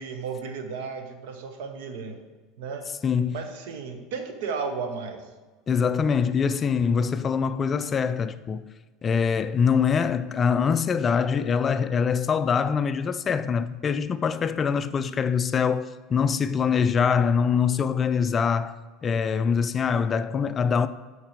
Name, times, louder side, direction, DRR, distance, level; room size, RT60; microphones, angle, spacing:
voice 1, 0.0-2.2 2.6-2.8 3.3-5.3 16.7-16.8, right 5 dB, 60° right, 0.9 m, -34 dB
voice 2, 3.0-3.4 5.7-8.6 9.0-18.8 19.0-20.9, left 6 dB, 30° left, 0.3 m, -24 dB
8.5 x 4.7 x 4.8 m
figure-of-eight pair, 70°, 0 cm